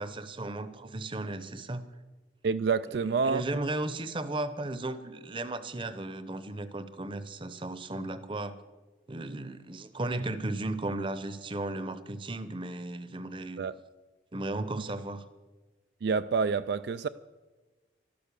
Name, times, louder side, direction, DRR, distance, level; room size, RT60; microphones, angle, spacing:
voice 1, 0.0-1.8 2.9-8.6 9.1-13.6 14.3-15.2, right 2 dB, 25° right, 0.8 m, -35 dB
voice 2, 2.4-3.4 13.6-13.7 16.0-17.1, right 5 dB, 65° right, 0.3 m, -28 dB
12.5 x 12.0 x 6.8 m
head